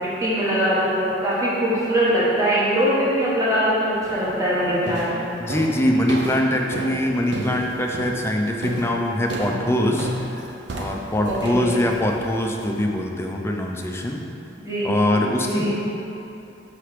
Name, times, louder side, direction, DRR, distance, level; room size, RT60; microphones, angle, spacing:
voice 1, 0.0-5.1 11.2-11.7 14.6-14.9 15.4-15.7, equal, 15° right, -8 dB, 1.2 m, -22 dB
sound 1, 4.0-4.4 4.9-12.8, right 1 dB, 65° right, 0.6 m, -32 dB
voice 2, 5.4-14.2 14.8-15.7, left 1 dB, 15° left, 1 dB, 0.4 m, -23 dB
5.7 x 3.3 x 5.7 m, 2.8 s
head